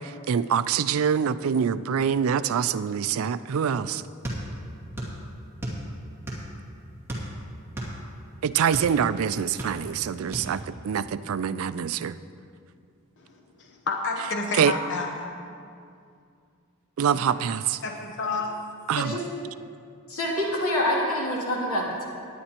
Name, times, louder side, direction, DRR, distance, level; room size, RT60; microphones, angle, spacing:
voice 1, 0.0-4.0 8.4-12.2 14.6-14.7 17.0-17.8 18.9-19.2, right 7 dB, 70° right, 14 dB, 0.4 m, -25 dB
sound 1, 4.2-5.2 5.4-6.6 7.1-8.9 9.4-10.0 10.3-10.5, right 1 dB, 10° right, 2.1 m, -33 dB
voice 2, 13.6-15.1 17.1-17.2 17.8-18.5, left 3 dB, 60° left, 1 dB, 0.8 m, -29 dB
voice 3, 20.1-22.0, left 1 dB, 85° left, -4 dB, 2.6 m, -26 dB
18.5 x 9.9 x 2.9 m, 2.3 s
head